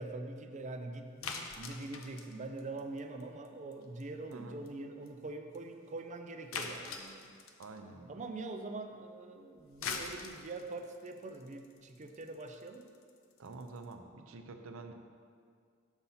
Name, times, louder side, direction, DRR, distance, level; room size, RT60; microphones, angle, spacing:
voice 1, 0.0-7.4 8.1-12.8, right 2 dB, 35° right, 5 dB, 0.5 m, -43 dB
sound 1, 1.2-3.5 3.7-4.0 4.3-4.4 4.7-4.8 5.1-5.2 5.5-5.6 6.5-7.8 9.6-13.9, left 5 dB, 75° left, 0.6 m, -43 dB
voice 2, 7.6-8.2 13.4-14.9, right 3 dB, 80° right, 6 dB, 0.6 m, -47 dB
7.0 x 4.1 x 5.6 m, 2.1 s
head